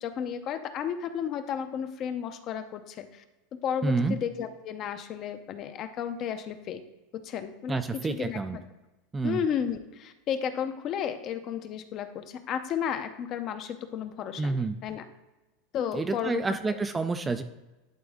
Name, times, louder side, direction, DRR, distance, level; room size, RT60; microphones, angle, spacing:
voice 1, 0.0-3.2 3.6-6.8 7.1-8.6 9.2-15.1 15.7-16.7, left 8 dB, 35° left, 9 dB, 0.6 m, -33 dB
voice 2, 3.8-4.2 7.7-8.6 9.1-9.4 14.4-14.8 15.9-17.4, right 3 dB, 10° right, 9 dB, 0.3 m, -28 dB
11.5 x 4.1 x 3.6 m, 1.1 s
supercardioid pair, 155°, 0 cm